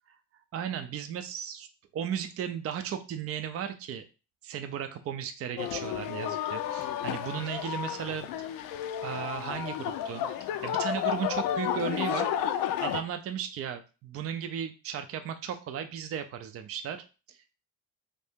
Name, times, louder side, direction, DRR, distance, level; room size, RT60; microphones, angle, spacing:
voice 1, 0.5-1.7 1.9-4.0 4.4-8.6 9.0-17.5, right 8 dB, 45° right, 8 dB, 0.4 m, -36 dB
sound 1, 5.6-13.0, left 10 dB, 85° left, 0.5 m, -32 dB
3.3 x 2.7 x 3.5 m, 0.32 s
cardioid pair, 135°, 33 cm